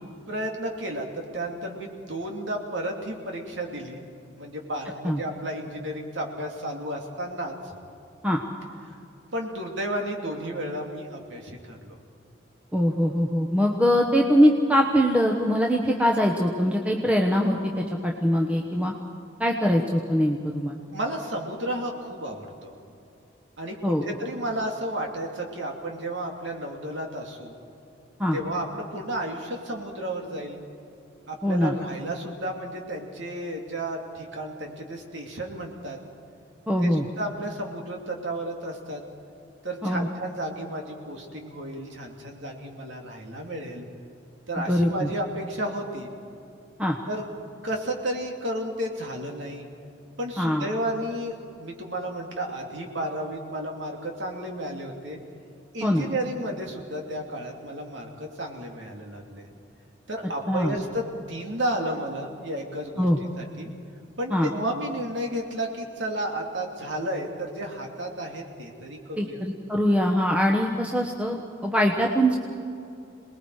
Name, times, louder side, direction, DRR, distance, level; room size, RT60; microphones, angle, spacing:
voice 1, 0.3-4.0 4.3-7.7 8.9-9.0 9.3-12.0 20.9-22.7 23.6-27.5 28.3-30.6 31.3-36.0 36.8-36.9 37.2-39.0 39.6-43.9 44.5-46.1 47.1-47.2 47.6-49.7 50.2-55.2 55.7-59.5 60.1-63.1 63.4-63.7 64.2-69.4, right 1 dB, 75° right, 1 dB, 2.8 m, -32 dB
voice 2, 12.7-18.9 19.4-20.7 23.8-24.1 28.2-28.4 31.4-31.7 36.7-37.0 39.8-40.1 44.7-45.1 46.8-47.0 50.4-50.7 55.8-56.1 60.5-60.7 63.0-63.2 64.3-64.5 69.2-72.4, equal, 5° right, 0 dB, 1.1 m, -22 dB
27.5 x 20.0 x 4.8 m, 2.6 s
head